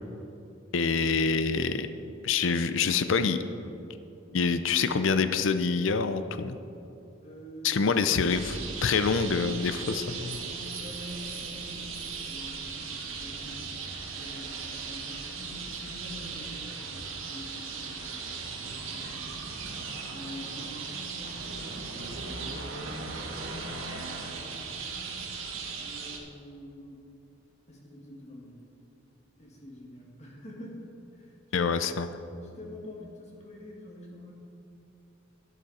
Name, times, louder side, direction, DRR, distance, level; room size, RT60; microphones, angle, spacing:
voice 1, 0.7-1.9 2.2-3.4 4.3-6.6 7.6-10.4 31.5-32.1, left 5 dB, 70° left, 10 dB, 0.5 m, -26 dB
voice 2, 7.2-8.8 10.3-19.8 20.1-25.5 25.8-27.1 27.7-28.7 29.4-32.0 32.4-34.3, equal, 35° left, -2 dB, 2.1 m, -47 dB
sound 1, 8.3-26.2, right 4 dB, 80° right, 1.5 m, -38 dB
12.0 x 11.0 x 4.3 m, 2.8 s
head